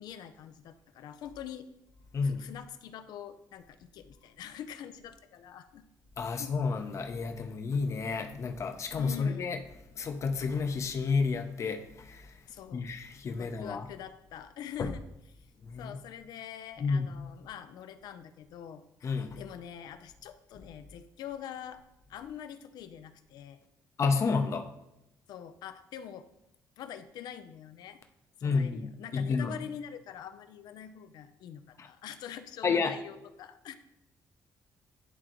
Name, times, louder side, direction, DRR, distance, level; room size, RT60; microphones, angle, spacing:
voice 1, 0.0-1.7 2.2-5.9 6.2-6.5 9.0-9.5 12.5-12.9 13.4-15.0 15.8-18.8 19.4-21.8 22.1-23.6 25.3-26.3 26.8-28.0 28.4-33.7, left 9 dB, 80° left, 10 dB, 0.5 m, -44 dB
voice 2, 6.2-9.6 10.0-12.3 12.7-13.9 14.8-14.9 15.6-16.0 16.8-17.1 19.0-19.4 24.0-24.7 28.4-29.5 31.8-31.9 32.6-32.9, left 4 dB, 45° left, 6 dB, 0.7 m, -30 dB
11.0 x 3.7 x 3.0 m, 0.88 s
cardioid pair, 105°, 7 cm